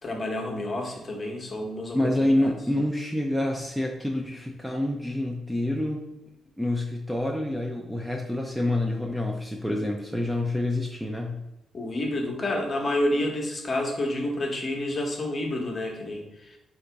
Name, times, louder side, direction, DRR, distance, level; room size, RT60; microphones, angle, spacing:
voice 1, 0.0-2.5 11.7-16.6, left 1 dB, 30° left, 1 dB, 0.9 m, -29 dB
voice 2, 1.9-6.0 6.6-11.4, left 1 dB, 5° right, 1 dB, 0.4 m, -27 dB
3.8 x 2.9 x 4.5 m, 0.93 s
cardioid pair, 135°, 0 cm